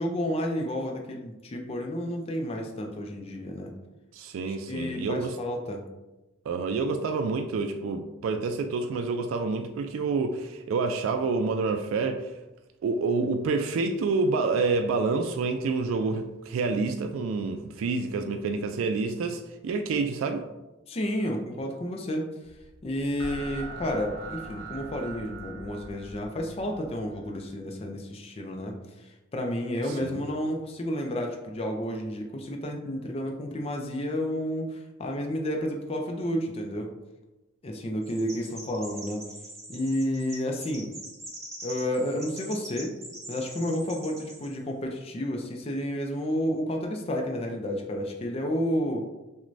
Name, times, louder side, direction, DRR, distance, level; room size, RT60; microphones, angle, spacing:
voice 1, 0.0-3.7 4.5-5.8 20.9-22.3 22.8-36.9 37.6-39.2 39.7-40.9 41.6-42.9 43.3-49.1, equal, 30° left, 2 dB, 0.4 m, -31 dB
voice 2, 4.1-5.4 6.5-12.3 12.8-20.5 29.9-30.2, right 4 dB, 90° right, 7 dB, 0.3 m, -28 dB
sound 1, 22.4-27.5, right 3 dB, 55° right, 0.9 m, -42 dB
Chirp tweet, 38.0-44.5, right 1 dB, 15° right, 0.7 m, -43 dB
6.0 x 2.2 x 2.6 m, 1.0 s
head